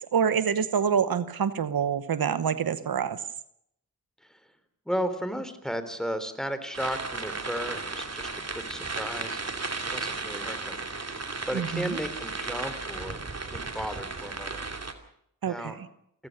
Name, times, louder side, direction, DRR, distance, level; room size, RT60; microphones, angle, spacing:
voice 1, 0.1-3.2 11.5-12.0 15.4-15.9, right 7 dB, 90° right, 13 dB, 1.0 m, -26 dB
voice 2, 4.9-14.6 15.5-15.8, equal, ahead, 10 dB, 3.6 m, -35 dB
sound 1, 6.7-14.9, right 3 dB, 45° right, 2.8 m, -35 dB
29.0 x 14.5 x 6.6 m, 0.71 s
cardioid pair, 50°, 34 cm